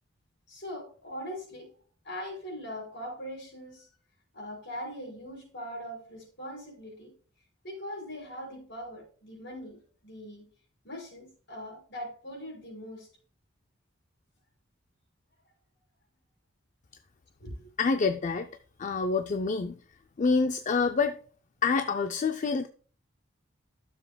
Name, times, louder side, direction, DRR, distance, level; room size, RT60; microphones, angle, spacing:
voice 1, 0.5-1.7 2.0-3.9 4.3-7.1 7.6-10.5 10.8-13.1 17.4-17.7, equal, 60° left, 4.8 m, -41 dB
voice 2, 17.8-18.5 18.8-19.8 20.2-21.2 21.6-22.7, left 4 dB, 40° left, 0.4 m, -27 dB
13.0 x 7.0 x 2.2 m
head